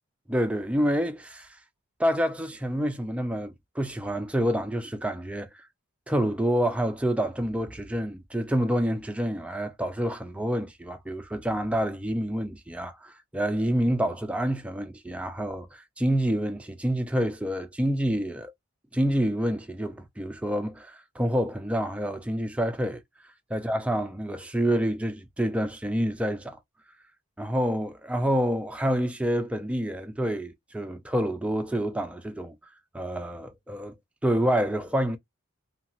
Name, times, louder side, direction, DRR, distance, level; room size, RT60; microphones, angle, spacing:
voice 1, 0.3-1.6 2.0-5.7 6.1-18.5 18.9-23.0 23.5-26.6 27.4-32.6 32.9-34.0 34.2-35.2, equal, 5° right, 0.3 m, -28 dB
2.9 x 2.3 x 2.8 m
head